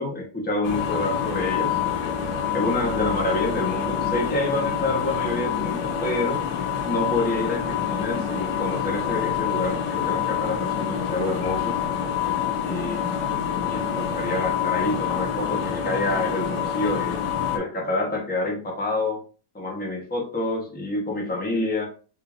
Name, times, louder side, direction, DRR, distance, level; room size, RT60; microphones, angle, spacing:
voice 1, 0.0-2.2 2.5-6.4 6.8-11.8 12.6-13.2 13.7-17.2 17.5-19.2 19.5-21.9, left 2 dB, 15° left, -1 dB, 0.4 m, -28 dB
sound 1, 0.6-17.6, left 8 dB, 85° left, 1.3 m, -27 dB
3.8 x 2.4 x 3.5 m, 0.37 s
omnidirectional pair, 1.9 m